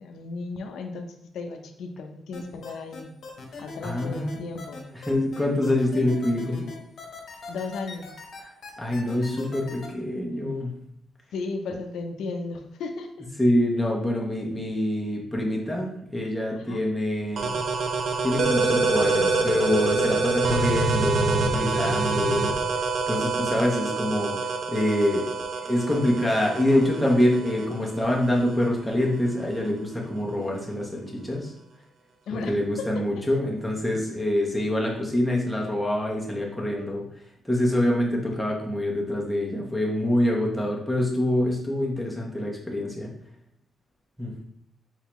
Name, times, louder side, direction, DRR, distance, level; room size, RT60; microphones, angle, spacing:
voice 1, 0.0-3.1 3.6-4.9 7.5-8.1 11.3-13.2 16.6-16.8 25.3-25.5 27.7-27.9 32.3-32.9, left 4 dB, 85° left, 5 dB, 0.5 m, -35 dB
sound 1, 2.3-9.9, left 4 dB, 55° left, 1.0 m, -41 dB
voice 2, 3.8-4.4 4.9-6.6 8.4-8.5 8.8-10.7 13.4-17.5 18.2-25.3 25.6-31.5 32.3-37.0 37.4-43.1 44.2-44.4, left 1 dB, ahead, -3 dB, 0.9 m, -25 dB
sound 2, 17.4-28.7, right 3 dB, 55° right, 0.6 m, -26 dB
4.5 x 3.7 x 3.0 m, 0.74 s
wide cardioid pair, 160°, 0 cm